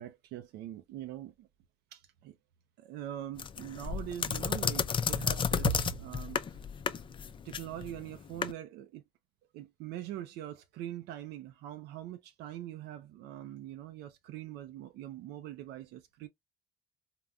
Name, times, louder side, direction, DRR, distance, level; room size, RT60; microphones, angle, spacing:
voice 1, 0.0-1.5 1.9-2.4 2.8-6.6 7.4-9.0 9.5-16.3, right 11 dB, 85° right, 0.4 m, -42 dB
sound 1, 3.4-8.5, left 7 dB, 30° left, 0.4 m, -32 dB
3.5 x 2.1 x 2.3 m
cardioid pair, 110°, 17 cm